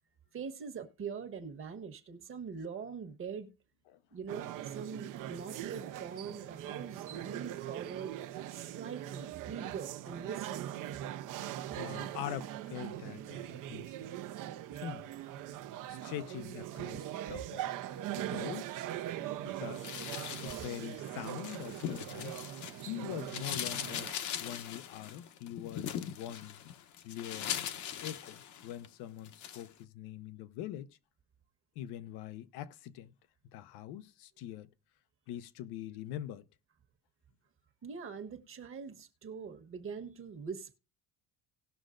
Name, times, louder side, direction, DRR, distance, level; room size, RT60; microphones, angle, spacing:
voice 1, 0.3-3.5 4.1-8.2 8.5-10.7 37.8-40.8, right 6 dB, 35° right, 1.3 m, -43 dB
sound 1, 4.3-24.1, right 12 dB, 55° right, 0.7 m, -41 dB
voice 2, 11.8-14.1 14.8-15.1 15.9-17.7 18.1-18.9 19.4-22.4 22.8-24.1 24.4-26.6 27.0-27.5 28.0-31.0 31.8-33.1 33.5-34.7 35.3-36.4, left 11 dB, 85° left, 0.9 m, -43 dB
sound 2, 19.7-22.9 23.2-28.9 29.2-29.7, left 9 dB, 50° left, 0.9 m, -40 dB
18.5 x 6.3 x 2.5 m
cardioid pair, 140°, 38 cm